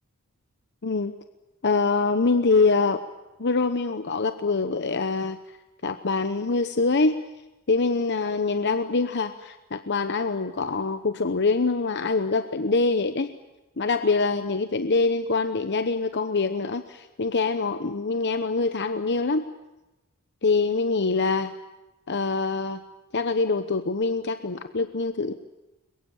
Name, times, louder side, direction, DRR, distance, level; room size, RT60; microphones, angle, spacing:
voice 1, 0.8-1.1 1.6-3.0 3.4-5.4 5.8-7.2 7.7-13.3 13.8-19.5 20.4-21.5 22.1-22.8 23.1-25.3, left 3 dB, 55° left, 9 dB, 0.9 m, -24 dB
22.5 x 22.5 x 8.9 m, 1.0 s
head